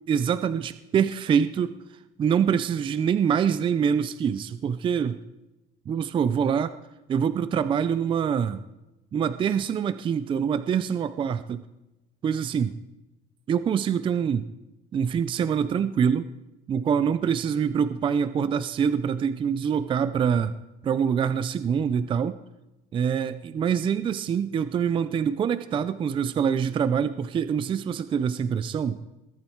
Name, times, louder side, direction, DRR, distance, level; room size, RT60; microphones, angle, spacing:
voice 1, 0.1-1.8 2.2-5.2 5.9-6.7 7.1-8.6 9.1-11.6 12.2-12.7 13.5-14.5 14.9-16.3 16.7-20.5 20.8-22.4 22.9-29.0, right 7 dB, 25° right, 13 dB, 0.5 m, -25 dB
21.0 x 12.0 x 4.6 m, 0.98 s
cardioid pair, 140°, 20 cm